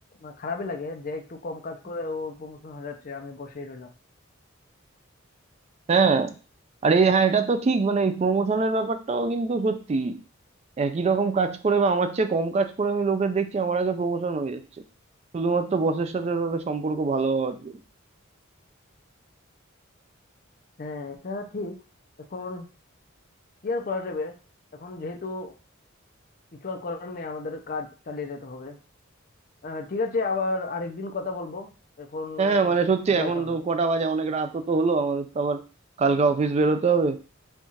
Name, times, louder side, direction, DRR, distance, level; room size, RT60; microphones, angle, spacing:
voice 1, 0.2-3.9 20.8-21.8 22.3-22.7 23.6-24.3 24.7-25.5 26.6-28.8 29.6-31.7 32.0-32.8 33.1-33.6, left 3 dB, 45° left, 4 dB, 0.5 m, -33 dB
voice 2, 5.9-6.4 6.8-10.2 10.8-14.6 15.3-17.8 32.4-35.6 36.0-37.2, right 4 dB, 30° right, 9 dB, 0.3 m, -23 dB
4.4 x 2.4 x 2.8 m, 0.34 s
head